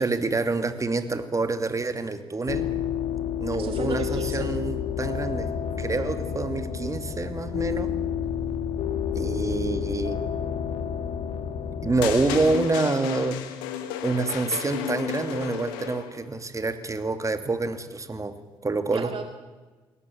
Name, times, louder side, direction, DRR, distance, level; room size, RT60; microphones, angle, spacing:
voice 1, 0.0-2.7 3.4-5.5 5.8-7.9 9.1-10.2 11.8-13.4 14.0-18.3 18.6-19.1, right 3 dB, 30° right, 9 dB, 2.8 m, -27 dB
sound 1, 2.5-12.6, left 8 dB, 65° left, 1.8 m, -30 dB
voice 2, 3.5-4.5 18.9-19.2, right 6 dB, 55° right, 6 dB, 2.3 m, -33 dB
sound 2, 12.0-16.3, left 10 dB, 85° left, 1.8 m, -33 dB
21.5 x 18.0 x 8.8 m, 1.3 s
hypercardioid pair, 45°, 11 cm